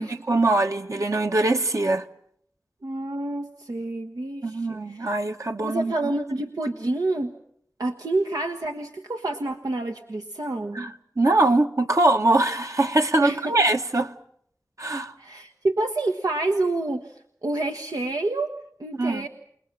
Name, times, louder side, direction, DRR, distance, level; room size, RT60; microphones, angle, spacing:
voice 1, 0.1-2.1 4.4-6.1 10.7-14.1 14.8-15.1 19.0-19.3, right 2 dB, 60° right, 1.5 m, -22 dB
voice 2, 2.8-5.1 5.6-7.3 7.8-10.8 13.2-13.5 15.2-17.0 17.4-18.5 18.8-19.3, right 2 dB, 90° right, 1.3 m, -28 dB
29.5 x 19.5 x 7.4 m
wide cardioid pair, 55°, 6 cm